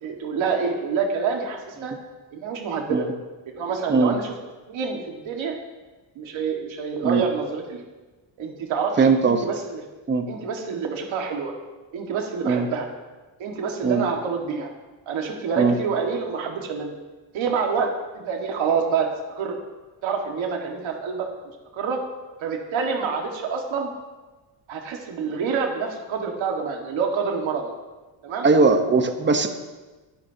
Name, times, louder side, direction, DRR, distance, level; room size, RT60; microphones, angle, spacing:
voice 1, 0.0-1.9 2.3-3.1 3.5-4.3 4.7-5.5 6.2-7.8 8.4-9.8 10.3-11.5 11.9-12.9 13.4-14.7 15.1-16.9 17.3-17.9 18.1-19.1 19.4-19.6 20.0-21.3 21.7-22.0 22.4-23.9 24.7-27.7 28.2-28.5, right 5 dB, 85° right, 1 dB, 1.9 m, -27 dB
voice 2, 9.0-9.4 10.1-10.2 12.4-12.7 13.8-14.0 15.6-15.8 17.8-17.9 28.4-29.5, right 4 dB, 25° right, 6 dB, 1.0 m, -19 dB
25.0 x 11.5 x 2.9 m, 1.2 s
cardioid pair, 155°, 45 cm